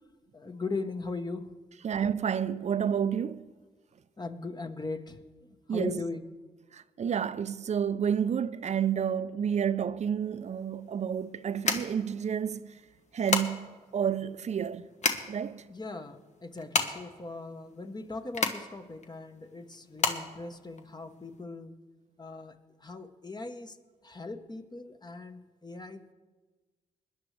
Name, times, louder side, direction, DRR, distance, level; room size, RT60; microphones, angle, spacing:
voice 1, 0.3-1.5 4.2-5.2 5.7-6.2 15.7-21.7 22.2-22.5 22.8-23.8 24.0-26.1, left 3 dB, 25° left, 1.1 m, -39 dB
voice 2, 1.8-3.5 5.7-6.0 6.7-12.8 13.1-14.9 15.3-15.7, right 8 dB, 50° right, 0.5 m, -30 dB
sound 1, 10.2-21.4, left 3 dB, 50° left, 1.2 m, -33 dB
21.0 x 10.0 x 3.3 m
supercardioid pair, 45°, 15 cm